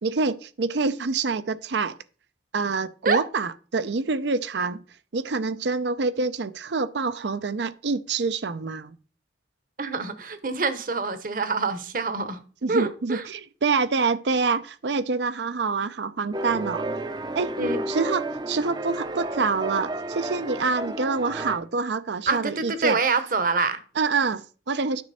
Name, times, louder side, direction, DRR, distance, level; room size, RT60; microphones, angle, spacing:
voice 1, 0.0-2.0 2.5-4.8 5.1-9.0 12.6-16.8 17.3-17.5 17.9-23.0 24.0-25.0, right 4 dB, 75° right, 0.6 m, -26 dB
voice 2, 9.8-12.4 12.7-13.3 17.6-17.9 22.3-23.8, right 4 dB, 50° right, 1.0 m, -26 dB
sound 1, 16.3-21.6, right 2 dB, 25° right, 0.5 m, -31 dB
9.6 x 6.1 x 4.2 m
head